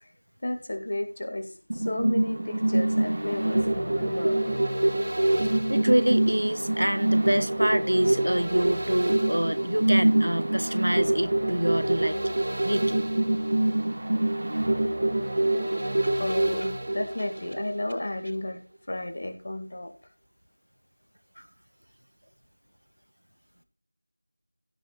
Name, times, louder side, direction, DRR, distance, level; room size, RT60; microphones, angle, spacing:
voice 1, 0.4-4.5 16.2-18.6 18.9-19.9, left 1 dB, 35° left, 1.9 m, -32 dB
sound 1, 1.7-17.9 18.3-18.4, right 1 dB, 40° right, 1.6 m, -25 dB
voice 2, 5.7-13.0 15.8-16.2, right 1 dB, 70° right, 1.5 m, -27 dB
16.0 x 5.6 x 3.9 m
figure-of-eight pair, 175°, 0 cm